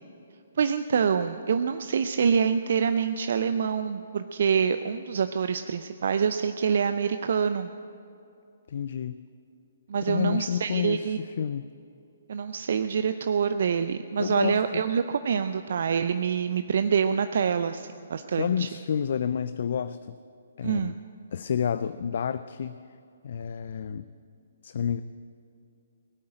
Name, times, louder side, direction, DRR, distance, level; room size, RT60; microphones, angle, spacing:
voice 1, 0.6-7.7 9.9-11.2 12.3-18.7 20.6-21.0, right 6 dB, 55° right, 10 dB, 0.5 m, -26 dB
voice 2, 8.7-9.1 10.1-11.6 14.2-14.8 18.4-20.2 20.6-20.9 21.3-22.8 23.2-24.1 24.6-25.0, left 8 dB, 55° left, 13 dB, 0.4 m, -29 dB
18.5 x 8.6 x 8.9 m, 2.6 s
figure-of-eight pair, 130°, 0 cm